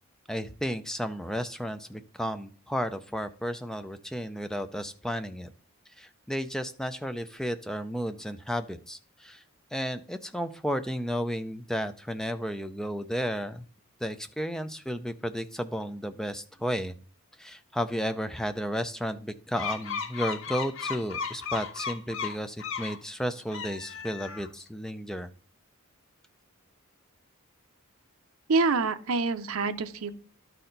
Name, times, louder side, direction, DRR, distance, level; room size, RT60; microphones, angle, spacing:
voice 1, 0.3-5.5 6.0-9.4 9.7-13.7 14.0-16.9 17.4-25.3, equal, ahead, 9 dB, 0.4 m, -33 dB
sound 1, 19.6-23.0 23.4-24.6, left 6 dB, 60° left, 0.7 m, -35 dB
voice 2, 28.5-30.1, right 3 dB, 70° right, 10 dB, 0.6 m, -26 dB
12.0 x 4.2 x 3.9 m, 0.43 s
head